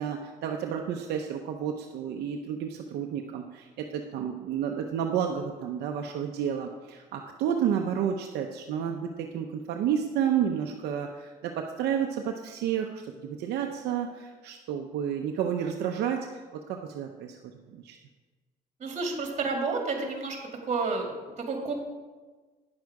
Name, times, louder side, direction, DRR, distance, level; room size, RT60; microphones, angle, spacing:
voice 1, 0.0-16.4 16.7-18.0, right 8 dB, 75° right, 3 dB, 0.7 m, -31 dB
voice 2, 18.8-20.4 20.7-21.7, right 4 dB, 45° right, 2 dB, 2.0 m, -30 dB
9.6 x 6.4 x 4.7 m, 1.3 s
cardioid pair, 110°, 17 cm